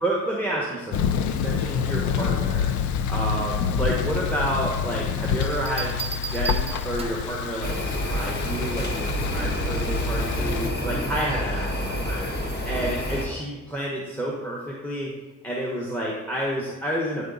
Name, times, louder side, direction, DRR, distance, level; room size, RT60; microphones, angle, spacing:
voice 1, 0.0-2.7 3.1-15.1 15.4-17.2, right 1 dB, 5° left, -4 dB, 1.2 m, -30 dB
Thunder, 0.9-10.7, left 7 dB, 75° left, 0.5 m, -27 dB
sound 1, 5.4-7.4 9.0-9.3, right 6 dB, 20° right, 0.6 m, -35 dB
sound 2, 7.6-13.3, equal, 35° left, 1.5 m, -28 dB
9.7 x 4.0 x 4.0 m, 1.3 s
cardioid pair, 90°, 30 cm